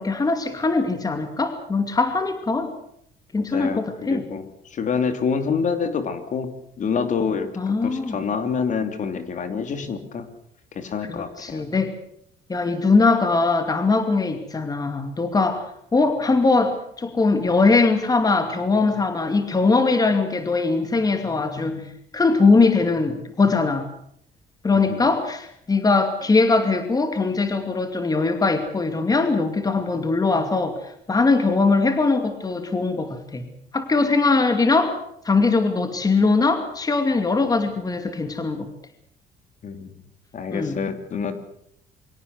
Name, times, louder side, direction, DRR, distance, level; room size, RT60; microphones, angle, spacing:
voice 1, 0.0-2.7 3.3-4.3 7.6-8.2 11.1-11.9 12.5-15.6 15.9-21.9 22.1-23.9 24.6-30.8 31.1-33.4 33.7-34.9 35.2-38.7 40.5-40.8, left 3 dB, 20° left, 8 dB, 2.5 m, -21 dB
voice 2, 3.4-10.3 10.7-11.6 24.7-25.0 39.6-40.0 40.3-41.4, left 6 dB, 45° left, 9 dB, 3.0 m, -27 dB
24.0 x 17.0 x 8.2 m, 0.71 s
cardioid pair, 110°, 17 cm